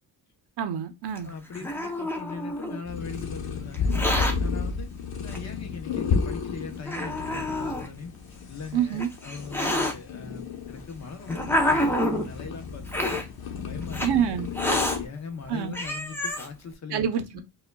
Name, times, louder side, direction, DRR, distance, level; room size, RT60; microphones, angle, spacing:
voice 1, 0.6-1.3 8.7-9.1 14.0-14.5 15.5-15.7 16.9-17.4, right 8 dB, 70° right, 0.7 m, -26 dB
voice 2, 1.2-3.9 4.4-4.9 5.2-8.1 8.5-13.2 13.6-14.0 15.0-17.0 17.3-17.4, left 5 dB, 40° left, 0.7 m, -40 dB
Hiss, 1.2-2.8 3.7-4.3 5.3-5.4 6.2-6.3 6.9-7.9 8.7-9.9 10.8-12.3 12.9-13.2 13.9-14.1 14.5-15.0 15.5-15.6 15.7-16.5, left 1 dB, 5° left, 0.6 m, -27 dB
sound 1, 2.9-15.1, left 5 dB, 60° left, 1.0 m, -32 dB
5.0 x 2.3 x 2.2 m
cardioid pair, 130°, 41 cm